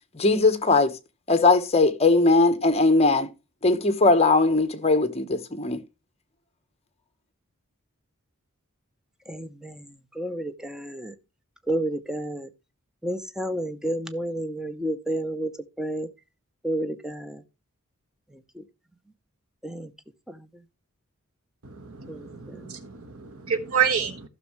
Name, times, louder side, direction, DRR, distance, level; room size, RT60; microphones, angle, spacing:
voice 1, 0.1-0.9 1.3-3.3 3.6-5.8, left 3 dB, 30° left, 1.1 m, -20 dB
voice 2, 10.2-11.1 11.7-12.5 13.0-15.5 15.8-16.1 16.6-17.3 19.6-19.8 22.1-22.2, right 1 dB, 5° right, 0.7 m, -30 dB
voice 3, 21.8-24.3, right 7 dB, 90° right, 1.3 m, -28 dB
15.0 x 6.4 x 3.1 m
head